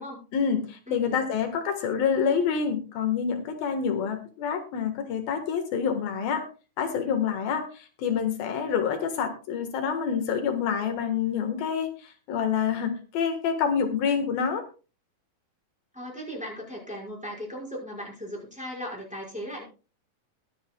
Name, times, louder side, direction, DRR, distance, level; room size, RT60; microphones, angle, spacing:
voice 1, 0.3-6.4 6.8-14.6, left 7 dB, 80° left, 6 dB, 3.4 m, -27 dB
voice 2, 0.9-1.2 15.9-19.6, equal, ahead, -3 dB, 5.1 m, -37 dB
22.0 x 9.1 x 2.3 m, 0.34 s
omnidirectional pair, 4.1 m